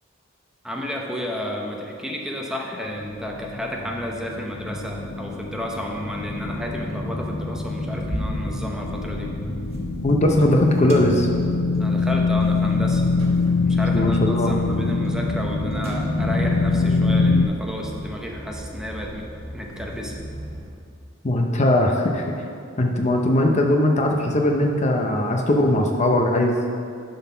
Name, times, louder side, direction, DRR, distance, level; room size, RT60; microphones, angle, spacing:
voice 1, 0.6-9.3 11.8-13.0 13.6-19.2 19.5-20.1, left 1 dB, 5° right, -1 dB, 0.8 m, -32 dB
sound 1, 2.9-17.4, left 3 dB, 80° left, 0.7 m, -24 dB
sound 2, 7.6-20.7, right 1 dB, 30° right, 1.3 m, -38 dB
voice 2, 10.0-11.3 13.9-14.5 21.2-22.3 22.8-26.6, left 1 dB, 35° left, 2 dB, 0.7 m, -19 dB
11.0 x 4.0 x 5.6 m, 2.4 s
head